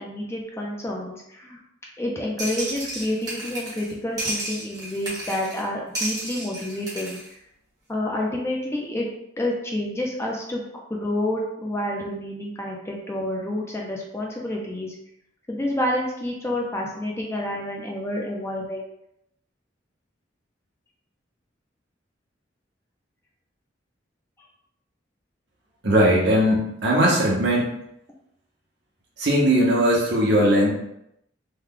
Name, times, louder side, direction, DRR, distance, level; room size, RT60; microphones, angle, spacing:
voice 1, 0.0-1.6 2.0-7.4 7.9-9.1 9.4-10.6 10.9-15.0 15.5-18.8, left 1 dB, 15° left, -1 dB, 0.5 m, -29 dB
sound 1, 2.4-3.9 4.2-5.6 5.9-7.3, right 1 dB, 20° right, 1.1 m, -32 dB
voice 2, 25.8-27.7 29.2-30.7, equal, 60° right, -3 dB, 1.0 m, -19 dB
3.2 x 2.2 x 3.7 m, 0.78 s
head